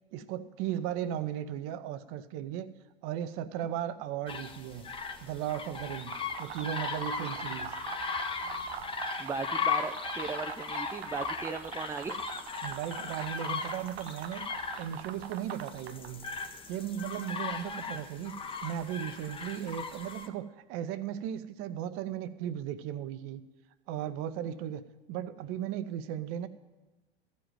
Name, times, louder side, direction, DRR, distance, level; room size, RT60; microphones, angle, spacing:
voice 1, 0.1-2.7 3.0-4.9 5.2-7.7 12.6-14.5 14.8-16.3 16.7-18.3 18.6-23.4 23.9-24.8 25.1-26.5, right 10 dB, 45° right, 12 dB, 0.8 m, -36 dB
sound 1, 4.3-20.3, left 5 dB, 15° left, 1.0 m, -37 dB
sound 2, 5.9-16.2, right 9 dB, 80° right, 0.7 m, -43 dB
voice 2, 9.2-12.3, right 4 dB, 10° right, 6 dB, 0.4 m, -37 dB
14.5 x 5.3 x 9.1 m, 1.1 s
hypercardioid pair, 95°, 31 cm